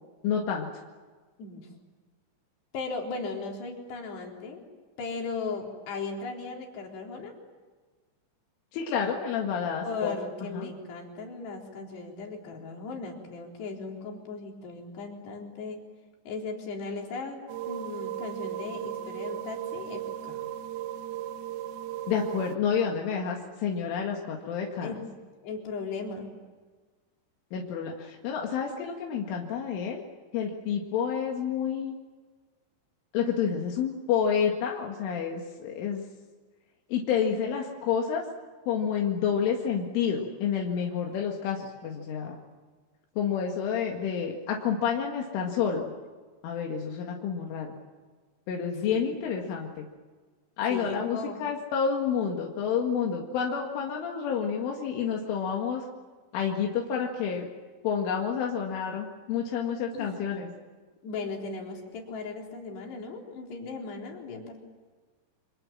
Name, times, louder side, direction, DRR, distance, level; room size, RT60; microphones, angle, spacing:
voice 1, 0.2-0.7 8.7-10.2 10.5-10.7 22.1-24.9 27.5-30.0 30.3-31.9 33.1-36.0 36.9-38.2 38.7-42.4 43.2-45.9 46.4-47.7 48.5-49.9 50.6-55.8 56.3-57.5 57.8-60.5, left 7 dB, 85° left, 0 dB, 4.6 m, -29 dB
voice 2, 2.7-4.6 5.0-7.4 9.8-15.8 16.3-17.4 17.7-20.5 24.8-25.1 25.4-26.3 48.8-49.5 50.7-51.4 59.9-60.2 61.0-64.6, left 4 dB, 60° left, 0 dB, 6.0 m, -37 dB
sound 1, 17.5-22.6, right 12 dB, 75° right, 2.4 m, -36 dB
30.0 x 26.0 x 7.5 m, 1.4 s
omnidirectional pair, 5.5 m